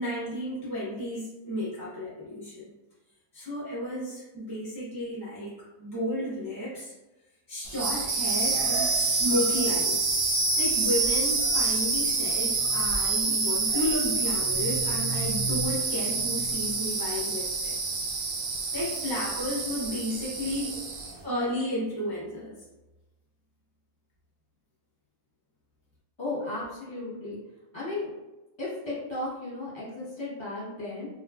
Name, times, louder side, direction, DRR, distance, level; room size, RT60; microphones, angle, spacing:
voice 1, 0.0-2.7 3.3-6.9 7.5-10.1 10.6-17.7 18.7-20.8 21.2-22.6, left 1 dB, 25° right, -9 dB, 0.5 m, -32 dB
sound 1, 7.7-21.2, right 3 dB, 65° right, 0.9 m, -27 dB
voice 2, 26.2-27.4 27.7-28.1 28.6-31.1, left 2 dB, 20° left, -8 dB, 0.9 m, -35 dB
2.9 x 2.3 x 2.3 m, 1.1 s
omnidirectional pair, 1.6 m